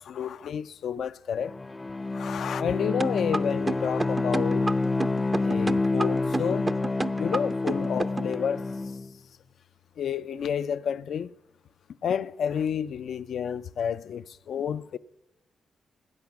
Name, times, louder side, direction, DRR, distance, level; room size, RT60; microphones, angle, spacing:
voice 1, 0.0-1.5 2.1-4.7 5.4-6.7 7.2-8.7 10.0-11.3 12.0-15.0, left 8 dB, 70° left, 0.4 m, -30 dB
Bowed string instrument, 1.4-9.1, left 3 dB, 25° left, 0.6 m, -28 dB
sound 1, 3.0-8.3, right 2 dB, 30° right, 0.7 m, -30 dB
18.5 x 8.5 x 5.9 m
hypercardioid pair, 45°, 0 cm